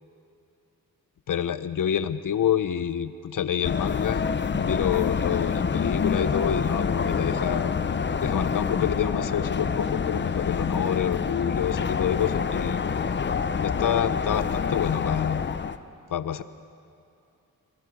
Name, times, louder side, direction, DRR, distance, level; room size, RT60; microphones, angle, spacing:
voice 1, 1.3-4.2 4.5-7.7 8.2-12.8 13.6-15.4 16.1-16.4, left 9 dB, 60° left, 12 dB, 0.9 m, -27 dB
sound 1, 3.6-15.8, left 6 dB, 30° left, 0.7 m, -27 dB
26.5 x 21.5 x 6.4 m, 2.6 s
wide cardioid pair, 125°, 35 cm